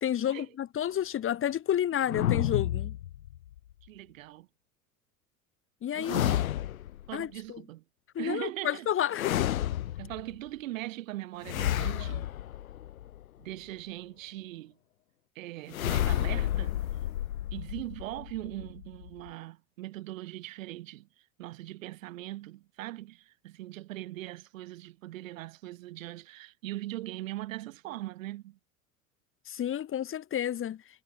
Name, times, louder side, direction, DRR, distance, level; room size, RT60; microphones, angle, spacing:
voice 1, 0.0-3.0 5.8-6.2 7.1-7.6 8.2-9.5 29.5-30.8, left 10 dB, 30° left, 1.8 m, -30 dB
sound 1, 2.1-3.6 6.0-7.1 9.1-10.3 11.4-13.3 15.7-19.3, left 12 dB, 70° left, 1.4 m, -31 dB
voice 2, 3.8-4.5 5.9-6.4 7.1-7.8 8.2-8.9 10.0-12.3 13.4-14.8 15.4-16.8 17.5-21.1 21.4-28.6, right 16 dB, 65° right, 2.2 m, -40 dB
figure-of-eight pair, 75°, 43 cm